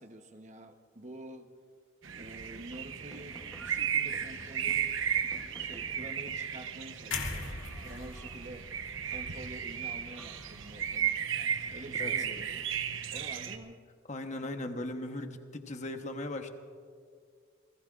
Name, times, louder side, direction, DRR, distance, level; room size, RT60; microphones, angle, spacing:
voice 1, 0.0-1.5 2.2-5.0 5.5-8.7 9.1-11.2 11.7-12.7 13.1-13.8, right 1 dB, 35° right, 6 dB, 1.0 m, -48 dB
sound 1, 2.0-13.6, right 8 dB, 85° right, 0.9 m, -35 dB
sound 2, 2.1-6.5 7.3-8.6 9.1-9.7 10.1-12.0, equal, 5° left, 0.9 m, -55 dB
sound 3, 7.1-11.1 11.5-11.7, left 4 dB, 85° left, 2.2 m, -41 dB
voice 2, 14.1-16.5, left 1 dB, 35° left, 6 dB, 1.0 m, -38 dB
28.0 x 20.0 x 2.5 m, 2.1 s
head